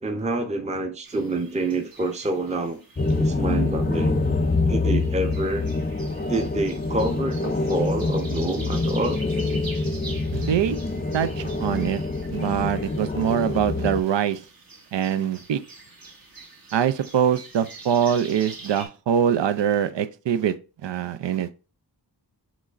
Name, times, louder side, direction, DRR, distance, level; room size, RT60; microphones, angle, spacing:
voice 1, 0.0-2.8 3.2-4.2 4.7-5.7 6.3-9.2 10.1-10.2, right 2 dB, 15° right, 0.6 m, -27 dB
sound 1, 1.0-18.9, right 3 dB, 55° right, 1.2 m, -45 dB
sound 2, 3.0-14.0, left 3 dB, 25° left, 0.5 m, -25 dB
voice 2, 10.3-10.8 11.1-12.0 12.3-14.4 14.9-15.6 16.7-20.5 20.8-21.6, right 9 dB, 85° right, 0.5 m, -23 dB
6.1 x 3.1 x 2.5 m
wide cardioid pair, 75°, 42 cm